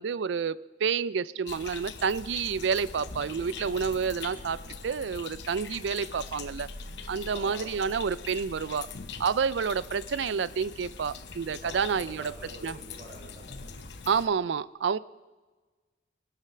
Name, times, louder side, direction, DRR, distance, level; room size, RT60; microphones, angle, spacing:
voice 1, 0.0-6.7 7.1-8.9 9.2-12.3 12.6-12.8 14.1-15.0, right 6 dB, 75° right, 18 dB, 0.4 m, -29 dB
sound 1, 1.5-14.3, left 5 dB, 65° left, 0.9 m, -42 dB
voice 2, 7.3-7.8 11.6-13.6, right 1 dB, 40° right, -4 dB, 5.4 m, -46 dB
20.5 x 8.3 x 5.7 m, 1.3 s
head